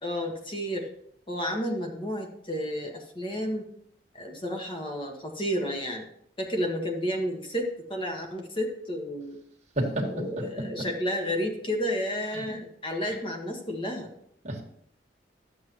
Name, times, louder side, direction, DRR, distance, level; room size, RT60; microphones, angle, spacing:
voice 1, 0.0-0.9 1.3-3.7 4.1-6.1 6.4-9.4 10.1-14.1, equal, 30° left, 2 dB, 1.6 m, -31 dB
voice 2, 9.8-10.9 12.3-12.4 13.1-13.2 14.4-14.6, right 1 dB, 40° right, 0 dB, 1.9 m, -31 dB
11.5 x 8.1 x 3.1 m, 0.68 s
head